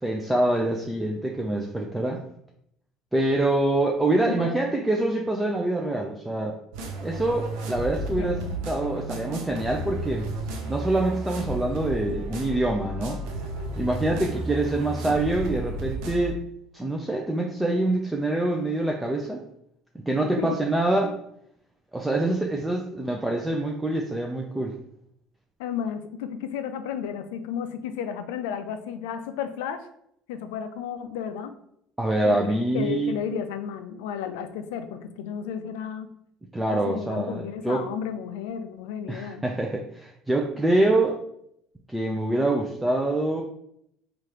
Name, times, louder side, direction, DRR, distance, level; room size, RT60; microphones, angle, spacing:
voice 1, 0.0-2.2 3.1-6.5 7.0-8.4 8.7-10.3 10.7-13.2 13.8-16.4 16.7-19.4 20.1-21.2 21.9-24.8 32.0-33.1 36.5-37.8 39.1-41.1 41.9-43.4, right 2 dB, 10° right, 0 dB, 0.5 m, -25 dB
voice 2, 4.3-4.8 8.1-9.0 20.4-20.6 25.6-29.9 30.3-31.5 32.2-36.1 36.7-39.5, left 8 dB, 80° left, 9 dB, 0.4 m, -33 dB
sound 1, 6.7-16.3, right 1 dB, 75° right, 0.7 m, -33 dB
3.1 x 2.5 x 4.2 m, 0.73 s
hypercardioid pair, 75°, 0 cm